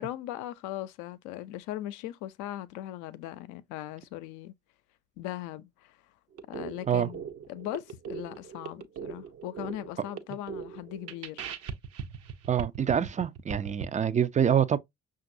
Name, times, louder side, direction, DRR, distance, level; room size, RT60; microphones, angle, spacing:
voice 1, 0.0-4.5 5.2-5.9 6.5-11.4, left 13 dB, 70° left, 0.6 m, -39 dB
sound 1, 6.3-13.8, right 7 dB, 50° right, 0.7 m, -40 dB
voice 2, 12.5-14.8, right 8 dB, 25° right, 0.4 m, -26 dB
5.8 x 2.5 x 2.6 m
hypercardioid pair, 60°, 32 cm